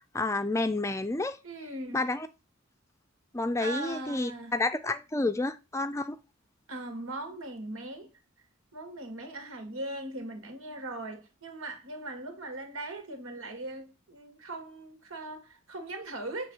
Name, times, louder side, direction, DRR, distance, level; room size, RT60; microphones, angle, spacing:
voice 1, 0.0-1.4 1.9-2.3 3.3-6.2, left 2 dB, 15° left, 0.4 m, -30 dB
voice 2, 1.4-2.1 3.6-4.5 6.7-8.1 8.7-16.5, right 2 dB, 85° right, 1.9 m, -39 dB
7.6 x 3.2 x 6.1 m
head